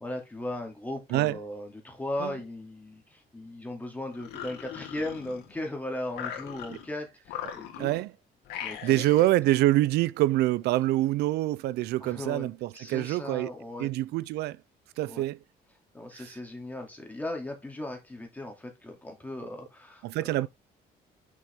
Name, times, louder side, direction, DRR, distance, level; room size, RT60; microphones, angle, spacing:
voice 1, 0.0-8.0 8.6-9.0 12.0-12.5 12.7-13.9 15.1-15.3 15.9-20.3, left 1 dB, 10° left, 2.4 m, -37 dB
sound 1, 4.1-5.7 6.1-6.9 7.3-8.1 8.5-9.4, left 10 dB, 85° left, 1.7 m, -40 dB
voice 2, 7.8-8.1 8.8-13.5 13.8-14.6 15.0-15.4 16.1-16.3 20.0-20.5, right 16 dB, 75° right, 0.4 m, -26 dB
6.1 x 5.8 x 3.5 m
cardioid pair, 110°, 17 cm